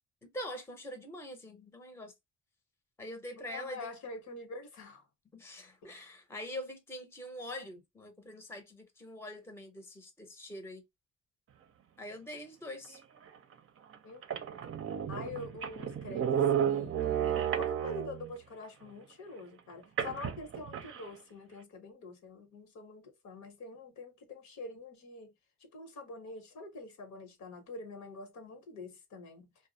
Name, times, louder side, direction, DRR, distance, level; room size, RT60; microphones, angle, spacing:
voice 1, 0.2-2.1 3.0-3.9 5.3-10.8 12.0-13.0, left 1 dB, 10° left, 0.7 m, -44 dB
voice 2, 3.3-5.0 5.8-5.9 14.0-14.2 15.1-25.3 25.6-29.5, left 3 dB, 65° left, 0.9 m, -46 dB
sound 1, 13.3-13.4 13.9-14.0 14.2-18.3 20.0-21.1, right 9 dB, 45° right, 0.5 m, -32 dB
2.3 x 2.0 x 2.6 m
cardioid pair, 90°, 30 cm